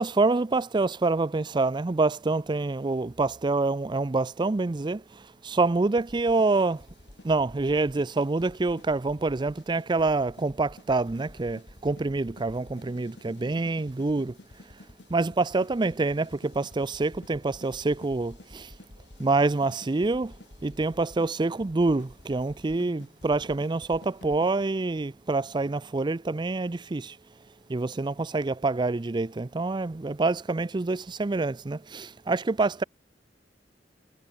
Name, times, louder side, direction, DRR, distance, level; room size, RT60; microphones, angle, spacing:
voice 1, 0.0-5.0 5.4-6.8 7.2-14.3 15.1-18.7 19.2-20.3 20.6-27.2 27.7-32.8, right 3 dB, 25° right, 0.4 m, -26 dB
sound 1, 6.0-24.6, left 1 dB, 65° left, 1.9 m, -51 dB
head